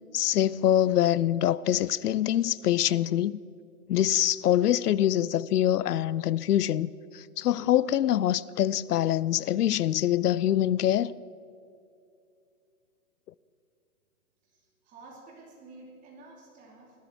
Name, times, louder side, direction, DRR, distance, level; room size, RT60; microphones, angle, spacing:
voice 1, 0.1-3.4 3.9-11.1, left 12 dB, 85° left, 0.6 m, -24 dB
voice 2, 14.4-17.0, right 3 dB, 15° right, 2.9 m, -51 dB
18.5 x 13.0 x 4.6 m
hypercardioid pair, 160°, 45 cm